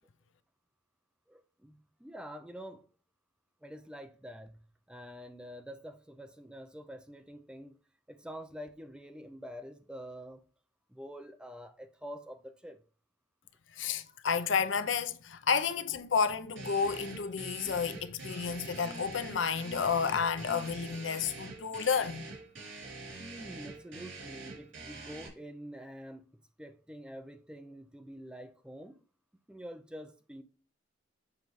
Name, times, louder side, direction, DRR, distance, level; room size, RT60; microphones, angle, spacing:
voice 1, 1.3-2.9 3.6-4.6 4.9-7.8 8.1-10.4 10.9-12.8 23.2-29.0 29.5-30.4, equal, 5° right, 0.4 m, -47 dB
voice 2, 13.7-22.2, left 6 dB, 85° left, 0.6 m, -31 dB
sound 1, 16.6-25.3, right 3 dB, 85° right, 3.1 m, -45 dB
7.2 x 5.2 x 3.1 m
head